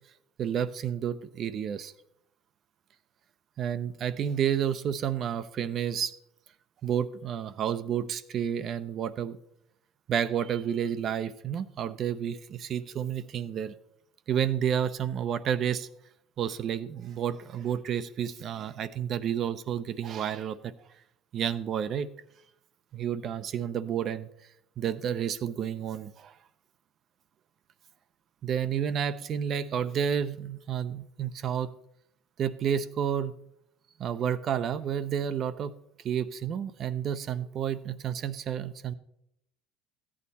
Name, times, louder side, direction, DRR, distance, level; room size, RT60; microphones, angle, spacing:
voice 1, 0.4-1.9 3.6-6.1 6.8-9.4 10.1-13.7 14.3-15.9 16.4-20.7 21.3-22.1 22.9-24.3 24.8-26.3 28.4-31.7 32.4-33.3 34.0-35.7 36.0-38.9, right 8 dB, 50° right, 14 dB, 0.6 m, -30 dB
14.0 x 8.7 x 4.2 m, 0.78 s
supercardioid pair, 105°, 0 cm